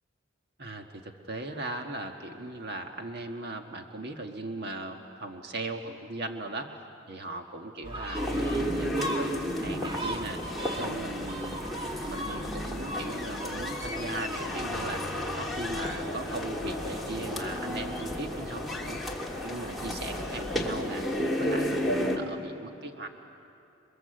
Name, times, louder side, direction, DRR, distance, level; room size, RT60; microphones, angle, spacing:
voice 1, 0.6-6.7 7.1-10.4 10.8-11.6 12.1-15.0 15.4-19.0 19.4-21.0 21.4-23.1, right 2 dB, 55° right, 4 dB, 1.5 m, -38 dB
Gull seagull, 7.8-20.7, equal, 25° right, 1.5 m, -40 dB
sound 1, 8.1-22.2, equal, ahead, 2.5 m, -32 dB
29.5 x 23.0 x 7.9 m, 2.7 s
head